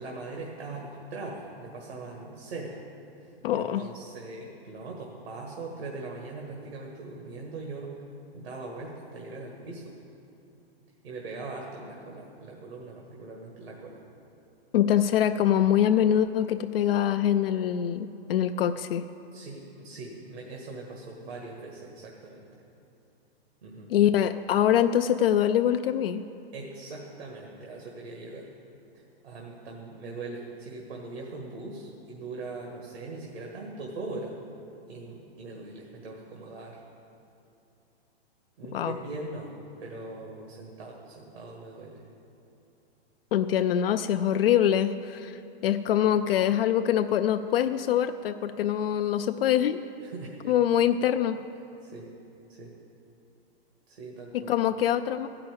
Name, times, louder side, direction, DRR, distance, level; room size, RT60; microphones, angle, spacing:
voice 1, 0.0-2.8 3.2-8.0 8.3-9.9 11.0-14.0 19.3-22.5 23.6-23.9 26.5-28.5 29.2-34.4 34.9-36.8 38.6-39.5 39.8-42.0 50.0-50.5 51.8-52.1 52.5-52.7 53.9-54.5, right 3 dB, 75° right, -1 dB, 1.7 m, -41 dB
voice 2, 3.4-3.8 14.7-19.0 23.9-26.2 38.7-38.9 43.3-45.4 45.6-49.8 50.5-51.4 54.3-55.3, left 10 dB, 65° left, 8 dB, 0.5 m, -24 dB
12.5 x 5.9 x 8.6 m, 2.8 s
hypercardioid pair, 155°, 32 cm